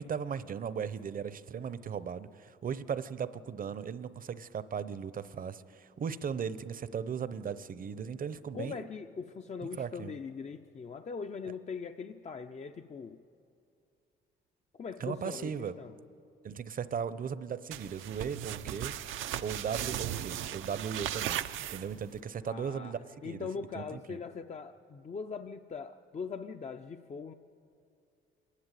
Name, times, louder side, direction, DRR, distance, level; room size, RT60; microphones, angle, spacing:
voice 1, 0.0-8.9 9.6-10.1 11.4-11.5 15.0-15.7 16.4-18.9 19.4-23.5 23.7-24.2, right 7 dB, 45° right, 14 dB, 0.8 m, -37 dB
voice 2, 8.5-13.2 14.7-15.9 22.5-22.9 23.2-27.3, left 5 dB, 35° left, 7 dB, 0.6 m, -41 dB
sound 1, 17.7-22.2, right 11 dB, 80° right, 0.6 m, -37 dB
26.5 x 11.5 x 9.2 m, 2.6 s
cardioid pair, 90°, 20 cm